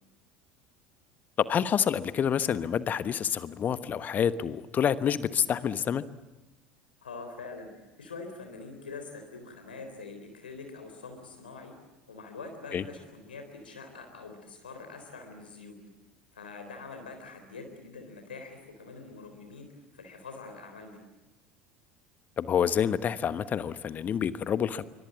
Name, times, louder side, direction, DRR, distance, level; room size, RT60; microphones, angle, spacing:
voice 1, 1.4-6.0 12.7-12.8 22.4-24.8, left 8 dB, 30° left, 14 dB, 1.2 m, -28 dB
voice 2, 7.0-11.7 12.1-15.8 16.3-21.0, left 4 dB, 75° left, 5 dB, 3.8 m, -44 dB
27.0 x 24.5 x 7.4 m, 1.1 s
figure-of-eight pair, 70°, 5 cm